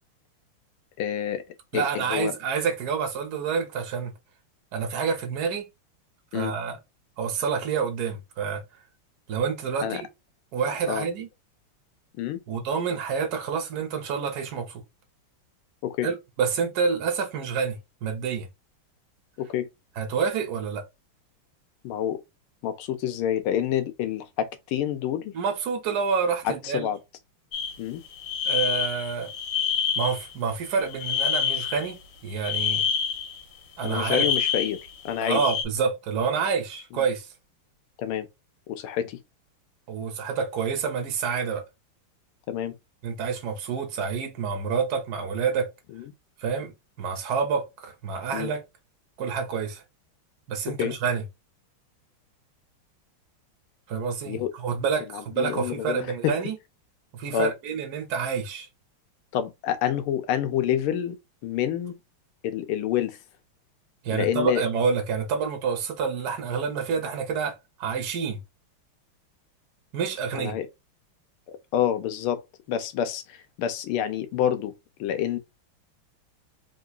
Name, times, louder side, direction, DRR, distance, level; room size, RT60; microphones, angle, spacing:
voice 1, 1.0-1.4 1.7-2.4 6.3-6.5 9.8-10.0 10.9-11.1 12.2-12.4 15.8-16.1 19.4-19.7 21.8-22.2 22.6-25.3 26.4-27.0 27.8-28.0 33.8-34.8 35.0-35.4 38.0-38.3 38.7-39.2 42.5-42.7 45.9-46.0 48.3-48.5 50.7-50.9 54.2-54.5 55.1-56.4 57.3-57.5 59.3-61.2 61.4-62.0 62.4-63.2 64.1-64.6 70.3-70.7 71.5-72.4 72.7-74.7 75.0-75.4, left 10 dB, 85° left, 1.5 m, -28 dB
voice 2, 1.7-4.2 4.7-5.7 6.3-6.8 7.2-8.6 9.3-10.1 10.5-11.3 12.5-14.8 16.0-18.5 20.0-20.9 25.3-26.9 28.4-29.3 30.0-32.8 33.8-34.3 35.2-37.3 39.9-41.6 43.0-45.7 46.4-46.7 47.0-48.6 49.2-49.8 50.5-51.2 53.9-56.6 57.1-58.7 64.0-68.4 69.9-70.6, right 6 dB, 55° right, 1.3 m, -28 dB
sound 1, 27.5-27.8 28.1-30.3 30.8-31.9 32.4-33.4 33.8-35.6, left 7 dB, 65° left, 1.3 m, -27 dB
3.8 x 3.0 x 2.4 m
omnidirectional pair, 2.4 m